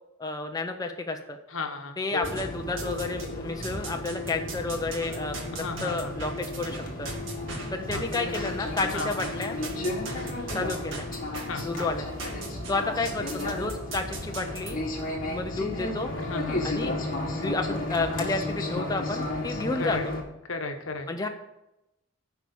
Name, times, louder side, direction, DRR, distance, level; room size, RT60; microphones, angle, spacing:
voice 1, 0.2-1.4 2.0-7.1 7.7-9.6 10.5-11.1 11.6-12.2 12.7-14.8 15.3-16.1 16.6-16.9 17.3-20.1 21.1-21.3, left 3 dB, 20° left, 4 dB, 0.6 m, -31 dB
voice 2, 1.5-2.3 5.6-6.1 7.9-8.0 8.9-9.1 11.5-11.7 16.2-16.7 19.8-20.0 20.5-21.1, left 3 dB, 75° left, 6 dB, 1.1 m, -34 dB
sound 1, 2.2-20.2, left 2 dB, 45° left, 1.9 m, -33 dB
sound 2, 2.2-3.3 3.6-14.7, right 3 dB, 65° right, 1.8 m, -40 dB
11.0 x 4.8 x 6.9 m, 0.91 s
head